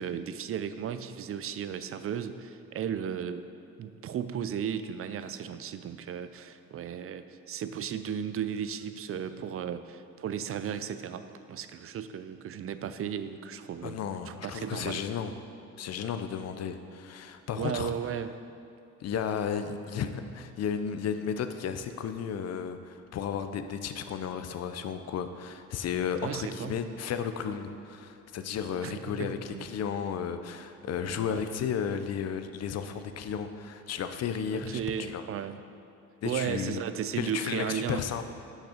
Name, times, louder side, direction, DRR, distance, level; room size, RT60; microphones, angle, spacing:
voice 1, 0.0-3.5 3.8-14.0 14.3-15.0 17.6-18.3 26.2-26.8 28.8-29.7 31.3-31.4 34.5-35.6 36.2-38.0, right 8 dB, 50° right, 11 dB, 0.4 m, -35 dB
voice 2, 13.8-15.3 15.8-17.9 19.0-35.2 36.2-36.8 37.2-38.2, left 7 dB, 55° left, 9 dB, 0.5 m, -33 dB
6.5 x 6.0 x 5.0 m, 2.6 s
cardioid pair, 90°, 30 cm